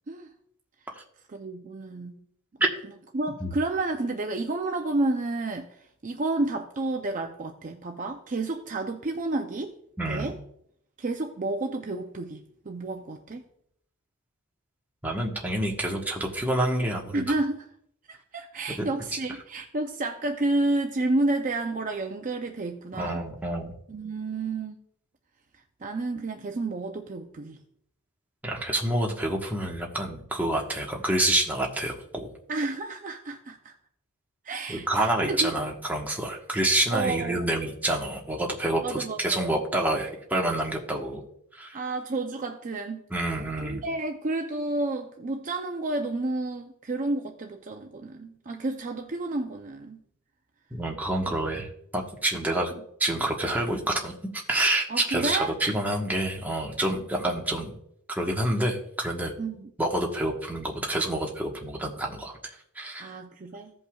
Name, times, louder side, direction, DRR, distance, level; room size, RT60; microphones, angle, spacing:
voice 1, 1.3-2.2 3.1-9.7 10.1-10.4 11.0-13.4 17.1-17.7 18.1-23.3 23.9-24.8 25.8-27.6 32.5-33.7 34.4-35.5 36.9-37.4 38.8-39.5 41.7-43.0 43.6-50.0 52.3-52.4 54.9-55.5 59.4-59.7 63.0-63.7, right 2 dB, 35° right, 3 dB, 0.5 m, -30 dB
voice 2, 10.0-10.3 15.0-17.2 23.0-23.8 28.4-32.3 34.7-41.2 41.5-41.8 43.1-43.8 50.7-51.7 51.9-52.7 53.0-57.7 58.1-59.3 59.8-62.3 62.7-63.1, right 1 dB, 10° right, -1 dB, 1.2 m, -28 dB
16.0 x 5.4 x 2.3 m, 0.72 s
head